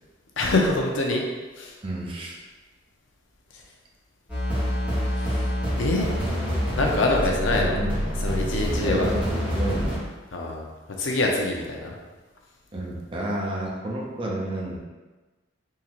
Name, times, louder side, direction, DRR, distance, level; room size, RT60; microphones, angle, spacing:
voice 1, 0.4-1.2 1.6-1.7 5.1-5.4 5.8-6.1 6.8-7.8 8.2-9.1 10.3-10.7 11.0-11.9, left 2 dB, 80° left, 0 dB, 0.6 m, -25 dB
voice 2, 1.8-2.4 7.5-7.9 8.5-10.0 12.7-14.8, right 1 dB, 30° right, -2 dB, 0.6 m, -30 dB
sound 1, 4.3-10.0, equal, 10° right, 1.4 m, -26 dB
3.7 x 2.8 x 3.0 m, 1.3 s
head